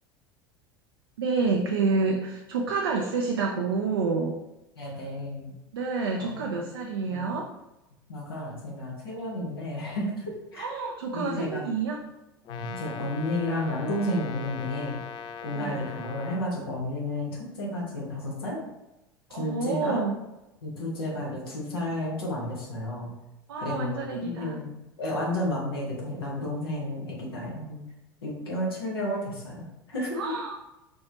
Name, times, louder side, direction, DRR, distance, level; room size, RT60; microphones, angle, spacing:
voice 1, 1.2-4.3 5.7-7.5 10.6-12.0 15.5-15.8 19.3-20.1 23.5-24.6 30.1-30.5, right 4 dB, 65° right, 0 dB, 0.5 m, -28 dB
voice 2, 4.8-5.5 6.2-6.3 7.1-7.3 8.1-10.7 11.1-11.6 12.5-15.0 15.4-18.6 19.3-20.0 20.6-23.1 23.6-24.7 25.0-27.8 28.2-30.2, left 1 dB, 70° left, -4 dB, 1.3 m, -32 dB
Brass instrument, 12.4-16.5, left 6 dB, 35° left, 0.4 m, -40 dB
4.4 x 3.1 x 2.9 m, 0.95 s
figure-of-eight pair, 75°, 13 cm